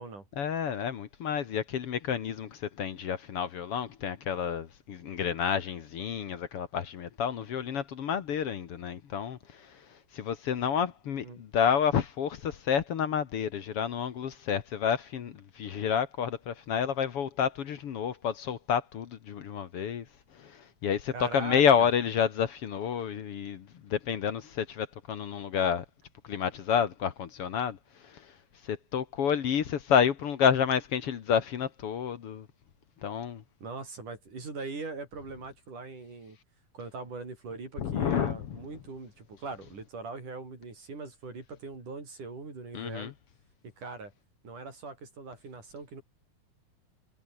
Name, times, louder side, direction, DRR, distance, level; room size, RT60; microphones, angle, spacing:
voice 1, 0.4-20.1 20.3-25.8 26.2-27.8 28.0-28.3 28.6-32.5 33.0-33.4 37.8-38.6 42.7-43.1, left 7 dB, 55° left, 2.1 m, -29 dB
voice 2, 21.1-21.9 33.6-36.4 36.7-43.1 43.8-44.1 44.4-46.0, right 3 dB, 85° right, 8.8 m, -41 dB
omnidirectional pair, 3.5 m